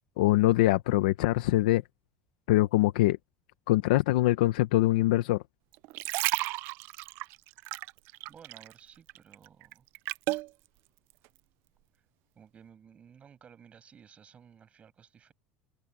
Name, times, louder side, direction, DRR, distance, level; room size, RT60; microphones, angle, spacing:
voice 1, 0.2-1.8 2.5-3.2 3.7-5.4, left 16 dB, 90° left, 0.9 m, -23 dB
sound 1, 5.7-8.8 9.1-10.5 11.1-11.3, right 22 dB, 60° right, 0.4 m, -33 dB
voice 2, 8.3-9.9 11.9-12.0 12.4-15.3, right 7 dB, 30° right, 6.9 m, -55 dB
supercardioid pair, 125°, 4 cm